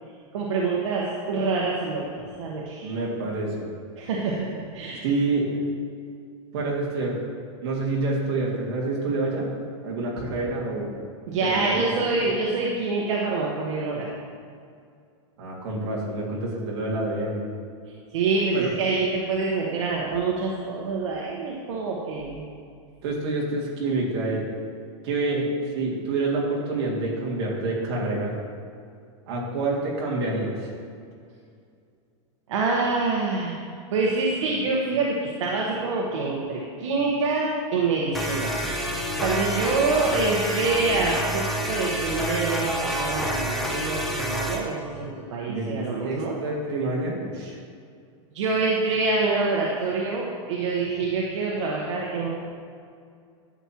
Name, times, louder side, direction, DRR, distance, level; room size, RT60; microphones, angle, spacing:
voice 1, 0.3-2.1 2.4-2.9 4.0-5.0 11.3-14.1 18.1-22.4 32.5-33.5 33.9-38.8 39.2-46.3 48.3-52.3, right 3 dB, 70° right, -3 dB, 1.1 m, -26 dB
voice 2, 2.8-3.7 5.0-5.6 6.5-7.2 7.6-9.5 9.8-10.9 11.4-12.3 15.4-17.4 18.5-18.7 23.0-24.5 25.0-25.5 25.8-28.3 29.3-30.7 45.5-47.6, right 2 dB, 50° right, -4 dB, 2.1 m, -27 dB
sound 1, 38.1-44.7, equal, ahead, 0.3 m, -28 dB
11.0 x 7.4 x 2.9 m, 2.3 s
supercardioid pair, 175°, 17 cm